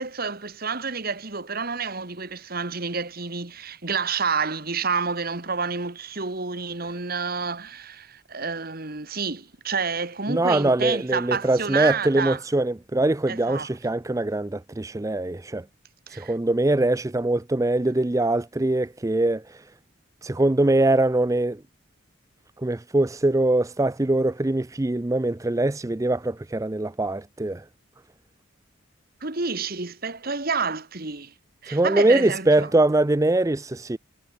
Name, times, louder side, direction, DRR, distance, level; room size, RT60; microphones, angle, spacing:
voice 1, 0.0-12.4 13.3-13.7 16.1-16.3 29.2-31.3 31.6-32.7, right 5 dB, 45° right, 1.7 m, -29 dB
voice 2, 10.3-15.6 16.1-19.7 20.2-21.6 22.6-27.6 31.7-34.0, right 2 dB, 15° right, 0.4 m, -22 dB
head